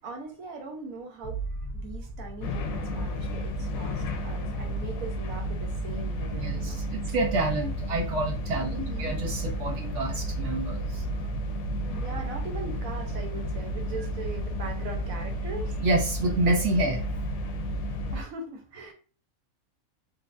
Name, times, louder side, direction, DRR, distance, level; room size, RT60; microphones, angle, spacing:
voice 1, 0.0-1.4 1.7-7.1 8.7-9.2 11.9-15.7 18.1-18.9, right 3 dB, 85° right, 3 dB, 1.3 m, -40 dB
sound 1, 1.2-6.7 7.1-7.7, right 2 dB, 45° left, 1.2 m, -42 dB
sound 2, 2.4-18.2, equal, 90° left, 1.0 m, -32 dB
voice 2, 6.4-8.7 9.0-11.0 15.8-17.0, right 2 dB, 65° right, 0 dB, 0.9 m, -28 dB
3.9 x 2.4 x 2.5 m, 0.38 s
omnidirectional pair, 1.4 m